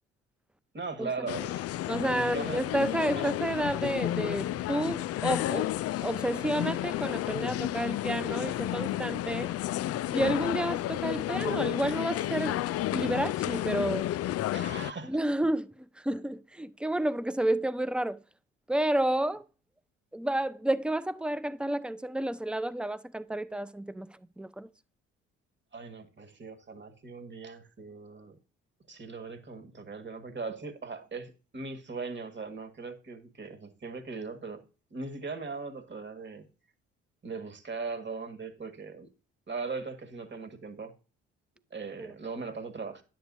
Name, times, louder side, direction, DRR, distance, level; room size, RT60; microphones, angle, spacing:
voice 1, 0.7-1.7 2.1-2.6 3.1-3.3 14.5-15.2 25.7-28.4 28.9-34.6 34.9-36.5 37.2-39.1 39.5-40.9 41.7-43.0, right 4 dB, 35° right, 1.8 m, -39 dB
sound 1, 1.3-14.9, left 14 dB, 50° left, 0.4 m, -31 dB
voice 2, 1.9-5.7 6.0-9.5 10.1-12.6 12.9-14.1 15.1-18.2 18.7-19.4 20.1-24.1 24.4-24.7 42.0-42.1, right 1 dB, 5° right, 0.5 m, -30 dB
10.0 x 7.9 x 2.7 m
hypercardioid pair, 55°, 32 cm